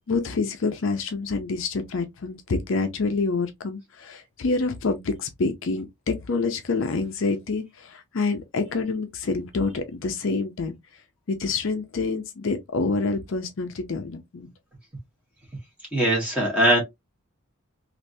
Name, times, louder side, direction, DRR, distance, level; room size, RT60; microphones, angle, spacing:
voice 1, 0.1-10.7 11.3-14.5, left 3 dB, 60° left, 0.5 m, -27 dB
voice 2, 15.9-16.8, right 1 dB, 5° right, 1.5 m, -20 dB
3.3 x 2.5 x 2.6 m
head